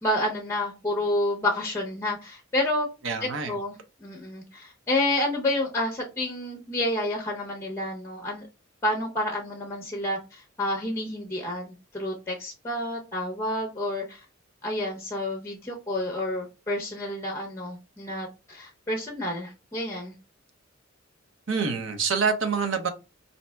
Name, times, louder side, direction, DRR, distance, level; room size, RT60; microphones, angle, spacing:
voice 1, 0.0-2.9 3.2-8.4 8.8-14.2 14.6-20.1, left 1 dB, 15° left, 0.7 m, -29 dB
voice 2, 3.0-3.5 21.5-22.9, right 5 dB, 70° right, 0.8 m, -26 dB
5.2 x 2.8 x 2.2 m
head